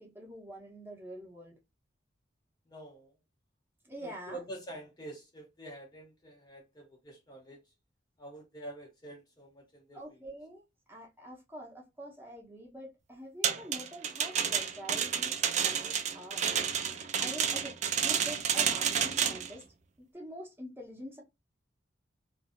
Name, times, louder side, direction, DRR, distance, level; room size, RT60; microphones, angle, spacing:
voice 1, 0.0-1.6 3.8-4.4 9.9-16.5 17.2-19.6 20.0-21.2, equal, 10° right, 0.7 m, -46 dB
voice 2, 2.7-3.1 4.0-7.6 8.2-10.2, right 1 dB, 20° left, 0.6 m, -47 dB
sound 1, 13.4-19.5, right 8 dB, 35° right, 0.3 m, -30 dB
2.6 x 2.5 x 2.4 m
head